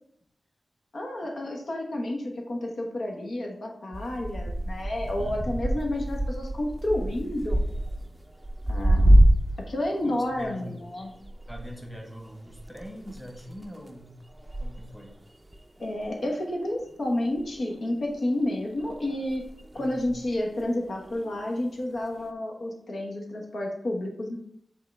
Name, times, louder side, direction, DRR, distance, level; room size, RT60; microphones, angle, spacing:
voice 1, 0.9-7.6 8.7-9.2 9.7-11.1 15.8-19.4 19.7-24.4, left 1 dB, 70° left, 0 dB, 1.2 m, -30 dB
sound 1, 3.9-9.7 10.0-17.1 17.4-18.2 18.8-20.7 21.1-21.5 22.2-22.3, right 1 dB, 10° right, 0.5 m, -26 dB
voice 2, 5.2-5.7 10.0-10.8 11.5-14.2 14.6-15.2 19.7-20.0, equal, 5° left, 1 dB, 1.4 m, -42 dB
8.4 x 3.7 x 3.4 m, 0.68 s
wide cardioid pair, 125°, 0 cm